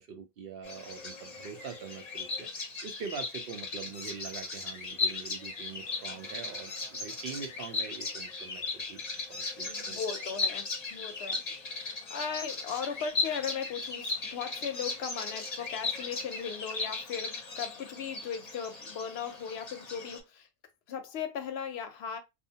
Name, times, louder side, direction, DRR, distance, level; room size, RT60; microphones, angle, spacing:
voice 1, 0.0-2.5 2.8-9.0 9.3-10.0, right 6 dB, 65° right, 0.7 m, -43 dB
Bird vocalization bird call bird song, 0.6-20.2, left 3 dB, 45° left, 0.7 m, -37 dB
voice 2, 9.6-11.6 12.1-20.5 20.9-22.2, left 7 dB, 75° left, 0.8 m, -37 dB
2.5 x 2.0 x 2.7 m
omnidirectional pair, 1.1 m